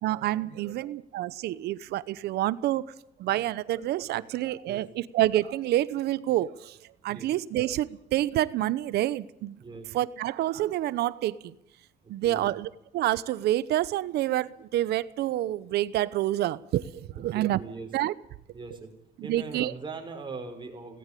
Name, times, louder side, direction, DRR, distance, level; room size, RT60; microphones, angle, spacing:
voice 1, 0.0-2.8 3.2-6.8 7.0-9.6 9.9-11.5 12.1-17.6 17.9-18.1 19.2-19.7, right 14 dB, 75° right, 0.9 m, -28 dB
voice 2, 9.6-9.9 12.2-12.5 17.1-17.9 18.5-18.9 19.2-21.0, right 4 dB, 30° right, 5.7 m, -40 dB
18.5 x 17.0 x 8.4 m
cardioid pair, 110°, 17 cm